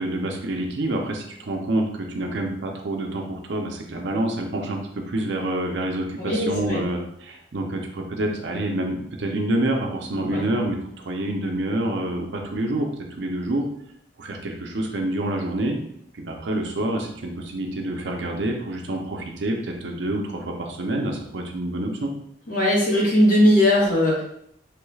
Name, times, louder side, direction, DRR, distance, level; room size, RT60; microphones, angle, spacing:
voice 1, 0.0-4.8 5.1-10.8 11.0-12.9 13.2-13.6 14.2-15.8 16.1-22.1, right 1 dB, 85° right, 2 dB, 0.6 m, -27 dB
voice 2, 6.2-6.8 10.3-10.4 22.5-24.2, left 1 dB, 50° left, -5 dB, 1.2 m, -19 dB
3.2 x 2.3 x 3.2 m, 0.71 s
head